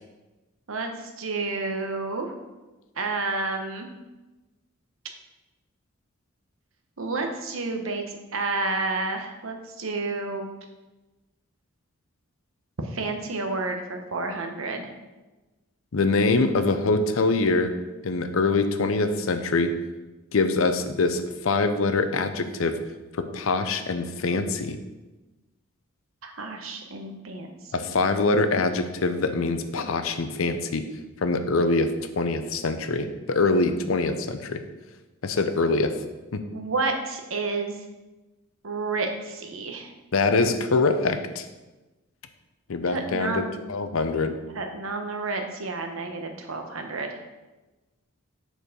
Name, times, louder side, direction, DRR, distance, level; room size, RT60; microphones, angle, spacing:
voice 1, 0.7-2.3 3.0-3.9 7.0-10.5 12.8-14.9 26.2-28.2 36.5-37.7 38.6-39.9 42.9-43.6 44.5-47.1, right 3 dB, 70° right, 4 dB, 1.0 m, -30 dB
voice 2, 15.9-17.7 18.0-19.7 20.3-22.8 23.1-24.8 27.7-30.8 31.2-31.9 32.2-34.6 35.2-35.9 36.3-36.4 40.1-41.4 42.7-43.4 43.7-44.3, left 3 dB, 70° left, 9 dB, 0.6 m, -24 dB
6.8 x 4.5 x 5.2 m, 1.1 s
head